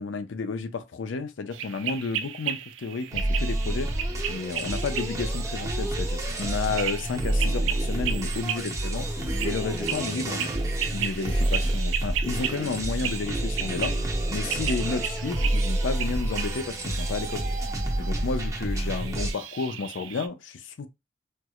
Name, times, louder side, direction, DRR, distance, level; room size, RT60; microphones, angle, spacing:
voice 1, 0.0-3.9 4.3-10.5 10.9-17.4 18.0-20.9, left 4 dB, 80° left, 0.5 m, -32 dB
sound 1, 1.5-20.3, right 9 dB, 85° right, 0.3 m, -35 dB
sound 2, 3.1-19.3, right 1 dB, 15° right, 0.7 m, -28 dB
4.4 x 2.0 x 2.4 m
head